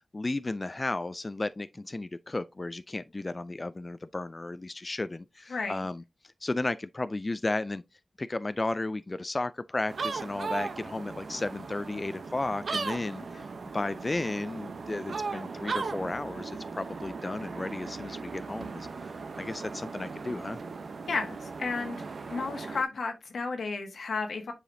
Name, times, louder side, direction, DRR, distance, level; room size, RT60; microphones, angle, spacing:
voice 1, 0.1-7.8 8.2-13.5 13.7-18.9 19.4-20.6, left 2 dB, 35° left, 0.3 m, -34 dB
voice 2, 5.5-5.9 13.3-13.4 21.1-22.0 22.3-24.5, left 4 dB, 90° left, 1.4 m, -33 dB
sound 1, 9.9-22.8, right 4 dB, 80° right, 0.6 m, -38 dB
7.5 x 4.9 x 2.6 m
wide cardioid pair, 70°, 0 cm